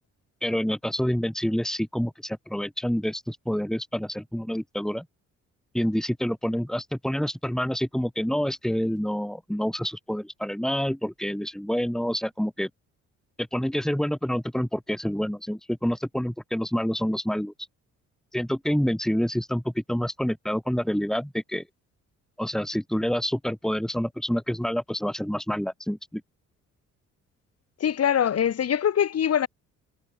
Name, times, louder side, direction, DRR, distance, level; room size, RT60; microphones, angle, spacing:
voice 1, 0.4-5.1 5.7-12.7 13.4-17.5 18.3-21.6 22.4-26.2, equal, ahead, 5.7 m, -27 dB
voice 2, 27.8-29.5, left 9 dB, 55° left, 1.9 m, -23 dB
cardioid pair, 90°, 30 cm